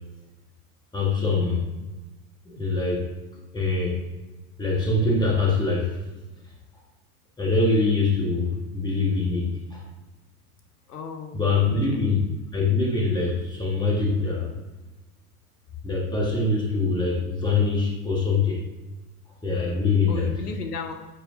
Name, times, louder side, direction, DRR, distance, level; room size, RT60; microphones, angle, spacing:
voice 1, 0.9-1.7 2.5-3.1 3.5-4.0 4.6-6.0 7.4-9.8 11.3-14.5 15.8-18.6 19.4-20.3, left 3 dB, 10° left, -3 dB, 1.8 m, -24 dB
voice 2, 10.9-12.0 20.1-20.9, left 4 dB, 85° left, 5 dB, 1.0 m, -35 dB
7.8 x 4.5 x 2.7 m, 1.1 s
hypercardioid pair, 90°, 45 cm